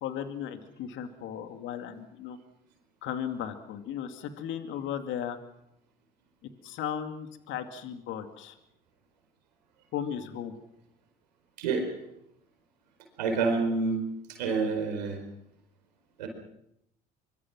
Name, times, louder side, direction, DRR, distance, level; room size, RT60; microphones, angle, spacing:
voice 1, 0.0-2.4 3.0-5.4 6.6-8.6 9.9-10.5, left 9 dB, 65° left, 8 dB, 2.4 m, -36 dB
voice 2, 13.2-14.0 14.4-15.2 16.2-16.3, right 4 dB, 90° right, 5 dB, 4.6 m, -27 dB
24.5 x 23.5 x 6.1 m, 0.80 s
hypercardioid pair, 60°, 21 cm